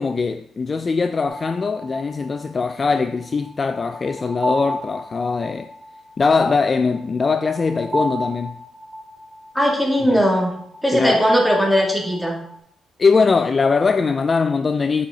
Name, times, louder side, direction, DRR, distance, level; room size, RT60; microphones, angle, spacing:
voice 1, 0.0-5.7 6.2-8.6 10.1-10.2 10.9-11.3 13.0-15.1, left 4 dB, 35° left, 0.4 m, -21 dB
sound 1, 1.3-12.6, equal, 30° right, 1.8 m, -32 dB
voice 2, 9.5-10.5 10.8-12.4, equal, 5° left, 2.3 m, -18 dB
8.4 x 5.7 x 3.8 m
cardioid pair, 90°, 0 cm